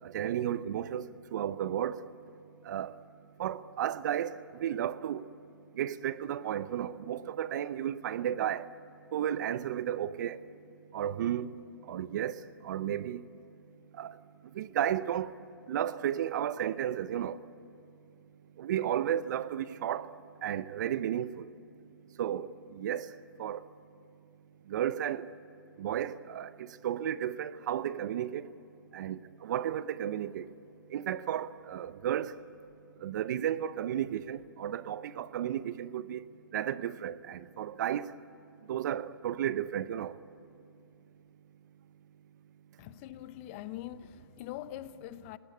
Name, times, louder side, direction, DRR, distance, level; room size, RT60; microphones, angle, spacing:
voice 1, 0.0-2.1 2.6-3.0 3.4-5.3 5.7-8.7 9.1-10.4 10.9-11.5 11.8-13.2 13.9-14.2 14.5-15.3 15.7-17.4 18.6-20.1 20.4-21.5 22.2-23.1 23.4-23.7 24.7-25.3 25.8-28.5 28.9-30.5 30.9-32.4 33.0-38.1 38.7-40.2, right 10 dB, 50° right, 0.7 m, -33 dB
voice 2, 42.8-45.4, left 13 dB, 30° left, 0.7 m, -43 dB
29.5 x 18.5 x 9.7 m
hypercardioid pair, 140°, 13 cm